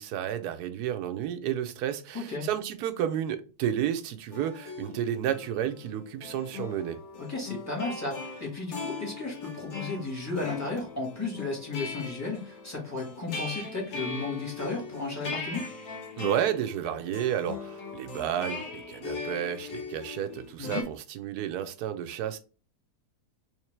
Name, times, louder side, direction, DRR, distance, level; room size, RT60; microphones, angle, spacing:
voice 1, 0.0-7.0 16.2-22.4, right 10 dB, 75° right, 1.1 m, -31 dB
voice 2, 2.1-2.5 7.2-15.7 20.6-20.8, left 3 dB, 10° left, 1.3 m, -34 dB
sound 1, 4.3-20.8, left 4 dB, 65° left, 1.3 m, -40 dB
3.5 x 3.2 x 3.2 m
omnidirectional pair, 1.7 m